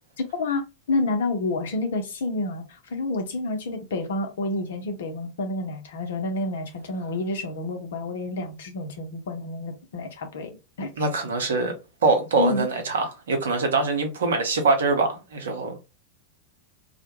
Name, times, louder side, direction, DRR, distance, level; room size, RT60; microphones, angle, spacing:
voice 1, 0.2-10.9 12.4-12.7, left 2 dB, 60° left, 0.6 m, -29 dB
voice 2, 11.0-11.7 12.0-15.8, right 3 dB, 65° right, 0.7 m, -23 dB
2.2 x 2.1 x 2.9 m
figure-of-eight pair, 90°, 0 cm